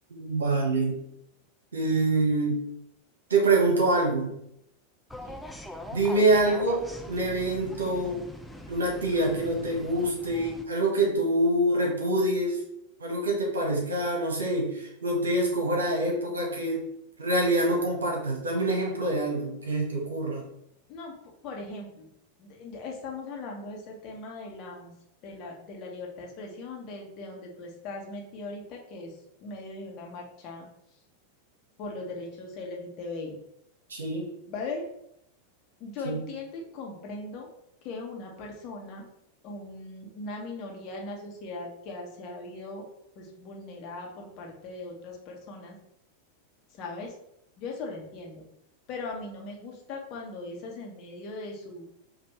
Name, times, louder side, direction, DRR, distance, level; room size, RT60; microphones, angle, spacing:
voice 1, 0.1-1.0 1.7-2.6 3.3-4.3 5.9-8.2 8.7-12.6 13.0-16.8 17.2-20.4 33.9-34.3 36.0-36.2, right 2 dB, 70° right, 0 dB, 1.1 m, -25 dB
voice 2, 5.1-5.5 20.9-21.1 21.4-22.1 22.4-24.9 25.2-30.7 31.8-33.4 34.5-34.8 35.8-37.5 37.8-39.1 39.4-42.9 43.2-45.7 46.8-47.1 47.6-48.4 48.9-51.9, left 3 dB, 40° left, 0 dB, 1.0 m, -39 dB
sound 1, 5.1-10.6, left 1 dB, 5° left, 0.4 m, -42 dB
5.1 x 2.6 x 3.1 m, 0.78 s
figure-of-eight pair, 90°, 0 cm